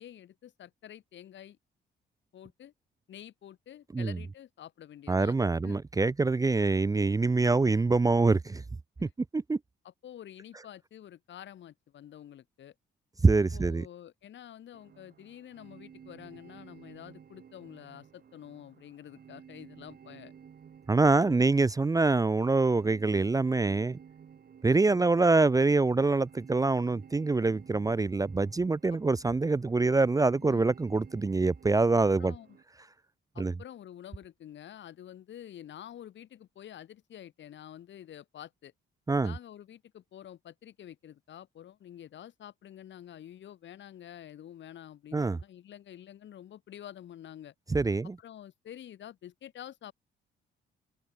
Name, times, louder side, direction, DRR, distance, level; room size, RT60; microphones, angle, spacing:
voice 1, 0.0-1.6 2.3-2.7 3.1-5.8 9.0-9.1 9.8-12.7 13.5-20.3 21.2-21.5 24.9-25.1 30.4-30.6 31.9-32.6 33.3-38.7 39.2-47.5 48.2-49.9, left 10 dB, 65° left, 3.5 m, -48 dB
voice 2, 5.1-8.6 9.0-9.6 13.2-13.9 20.9-24.0 24.6-32.3 33.4-33.5 39.1-39.3 45.1-45.4 47.7-48.2, right 3 dB, 15° right, 0.6 m, -25 dB
sound 1, 14.7-32.6, right 7 dB, 55° right, 7.8 m, -54 dB
open air
cardioid pair, 90°, 20 cm